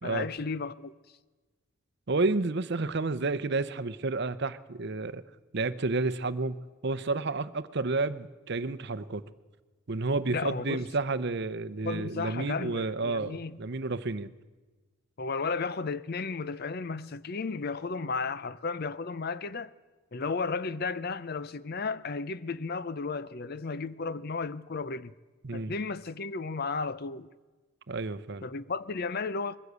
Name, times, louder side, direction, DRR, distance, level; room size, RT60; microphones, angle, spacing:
voice 1, 0.0-0.9 10.3-10.8 11.8-13.6 15.2-19.7 20.1-25.1 25.5-27.3 28.4-29.6, left 4 dB, 45° left, 0.5 m, -34 dB
voice 2, 2.1-5.2 5.5-9.2 9.9-14.3 25.4-25.7 27.9-28.5, right 3 dB, 50° right, 0.7 m, -31 dB
21.5 x 15.0 x 8.1 m
head